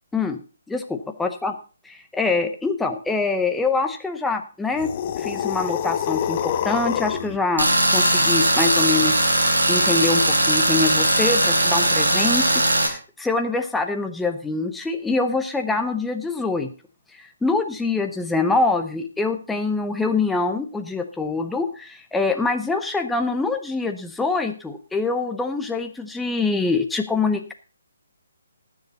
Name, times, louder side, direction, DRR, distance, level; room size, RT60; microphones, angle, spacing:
voice 1, 0.7-1.5 1.9-4.9 5.2-9.4 9.7-16.7 17.2-27.5, left 3 dB, 5° left, 5 dB, 0.8 m, -24 dB
sound 1, 4.7-7.4, left 9 dB, 35° left, 0.9 m, -26 dB
Tools, 7.6-12.9, right 1 dB, 75° right, 4.1 m, -19 dB
19.5 x 7.3 x 4.0 m, 0.35 s
figure-of-eight pair, 140°, 0 cm